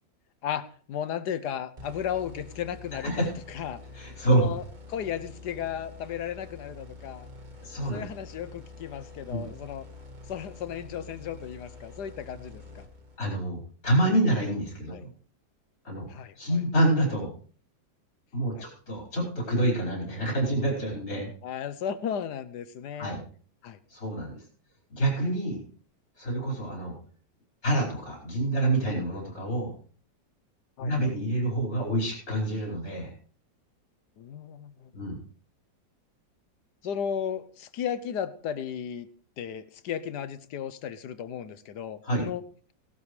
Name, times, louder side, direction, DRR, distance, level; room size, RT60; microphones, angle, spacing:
voice 1, 0.4-3.8 4.3-4.6 4.9-7.3 7.9-9.8 10.3-12.8 14.9-15.0 16.1-16.6 18.5-18.7 21.4-23.2 23.6-23.8 30.8-30.9 34.2-34.9 36.8-39.1 39.4-42.4, left 8 dB, 70° left, 13 dB, 1.3 m, -35 dB
sound 1, 1.8-13.4, left 3 dB, 25° right, 1.6 m, -46 dB
voice 2, 3.9-4.5 7.6-8.0 9.3-9.4 13.2-15.1 15.8-16.1 16.4-17.3 18.3-21.3 23.0-23.2 23.9-24.4 24.9-25.6 26.2-26.9 27.6-29.7 30.8-33.1 34.9-35.2 42.0-42.2, right 1 dB, 50° left, -2 dB, 5.5 m, -27 dB
17.5 x 12.5 x 3.2 m, 0.43 s
omnidirectional pair, 2.0 m